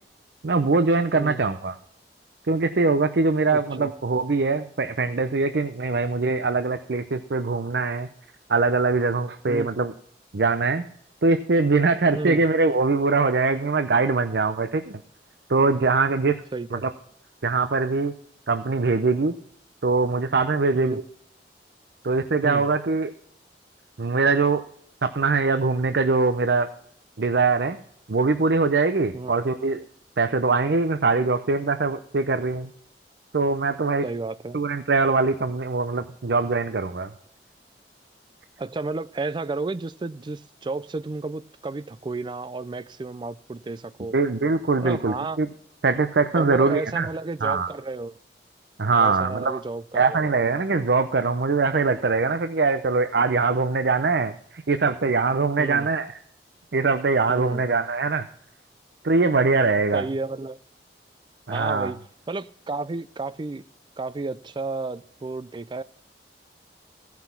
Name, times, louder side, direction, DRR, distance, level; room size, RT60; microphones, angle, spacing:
voice 1, 0.4-1.8 2.5-8.1 8.5-9.9 10.3-10.8 11.2-15.0 15.5-16.4 16.7-16.9 17.4-18.1 18.5-19.3 19.8-21.0 22.0-23.1 24.0-24.6 25.0-26.7 27.2-27.8 28.1-29.8 30.2-32.7 33.3-34.1 34.5-37.1 44.1-45.5 45.8-47.1 47.4-47.7 48.8-49.6 49.9-56.1 56.7-58.2 59.0-60.0 61.5-61.9, right 3 dB, 70° right, 0.6 m, -22 dB
voice 2, 3.5-3.9 9.5-9.7 12.1-12.4 16.5-16.8 20.7-21.0 22.4-22.7 29.1-29.4 34.0-34.6 38.6-44.1 44.8-45.4 46.3-48.2 48.9-50.4 55.6-55.9 57.3-57.6 59.9-60.6 61.5-62.0 62.3-63.6 64.0-65.8, right 3 dB, 25° right, 0.4 m, -32 dB
15.5 x 5.9 x 5.8 m
head